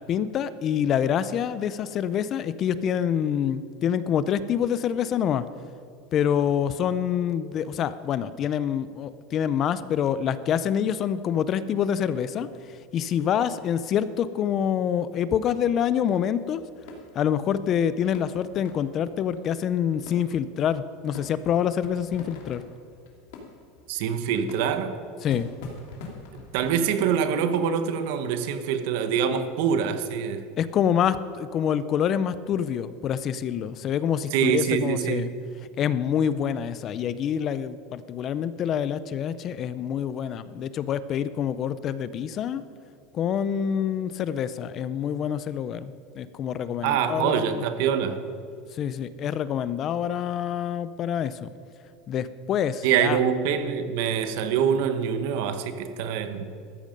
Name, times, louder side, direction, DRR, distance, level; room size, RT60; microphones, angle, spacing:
voice 1, 0.0-5.4 6.1-12.5 12.9-16.6 17.2-22.6 25.2-25.5 30.6-35.3 35.8-42.6 43.1-47.6 48.8-51.5 52.1-53.2, left 9 dB, 30° left, 15 dB, 0.4 m, -26 dB
sound 1, 16.4-26.8, left 3 dB, 65° left, 2.8 m, -45 dB
voice 2, 23.9-25.0 26.3-30.5 34.3-35.4 46.8-48.2 52.8-56.5, right 8 dB, 60° right, 9 dB, 1.1 m, -25 dB
14.5 x 13.5 x 5.2 m, 2.5 s
supercardioid pair, 170°, 0 cm